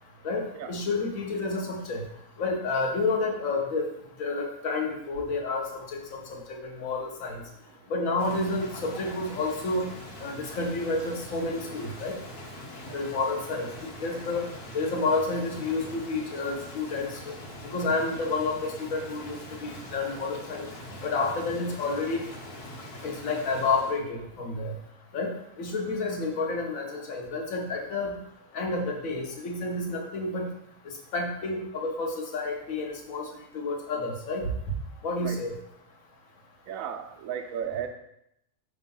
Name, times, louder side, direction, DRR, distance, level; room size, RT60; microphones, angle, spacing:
voice 1, 0.2-2.0 2.4-3.9 4.2-6.0 6.3-7.4 7.9-9.9 10.2-12.1 12.9-13.7 14.0-14.4 14.7-17.3 17.7-20.7 21.0-22.2 23.0-24.7 25.1-28.2 28.5-30.5 31.1-33.3 33.5-34.4 35.0-35.5, left 3 dB, 65° left, 1 dB, 1.4 m, -30 dB
Rain, 8.2-24.0, left 1 dB, 85° left, 1.6 m, -43 dB
voice 2, 36.7-37.9, right 8 dB, 70° right, 5 dB, 1.1 m, -35 dB
5.5 x 3.6 x 5.4 m, 0.79 s
omnidirectional pair, 1.6 m